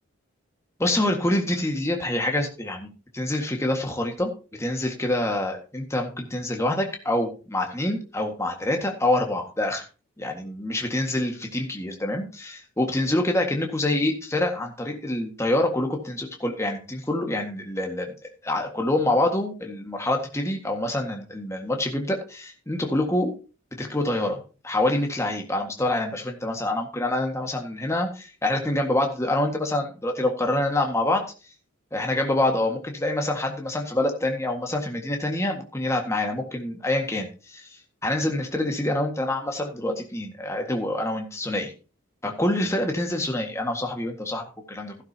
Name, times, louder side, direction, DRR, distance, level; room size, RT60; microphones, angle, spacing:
voice 1, 0.8-4.3 4.6-9.9 10.2-18.1 18.4-23.3 23.8-31.2 31.9-41.7 42.2-45.0, left 1 dB, 15° left, 2 dB, 1.7 m, -26 dB
13.5 x 11.5 x 2.9 m, 0.34 s
head